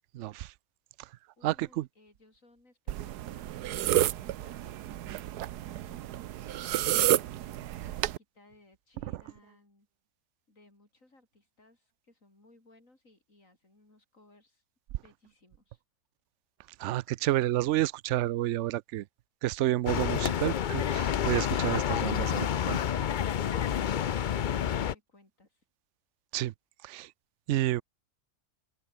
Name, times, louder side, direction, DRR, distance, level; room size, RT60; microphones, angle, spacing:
voice 1, 0.1-0.5 1.4-1.9 16.8-19.0 19.4-22.8 26.3-26.5 26.8-27.1 27.5-27.8, right 15 dB, 70° right, 0.7 m, -30 dB
voice 2, 1.4-6.8 7.1-9.9 10.5-14.6 15.0-15.8 23.6-25.7, left 2 dB, 55° left, 6.9 m, -62 dB
sound 1, 2.9-8.2, right 13 dB, 85° right, 1.3 m, -30 dB
sound 2, 19.9-24.9, left 9 dB, 85° left, 0.4 m, -29 dB
open air
omnidirectional pair, 1.7 m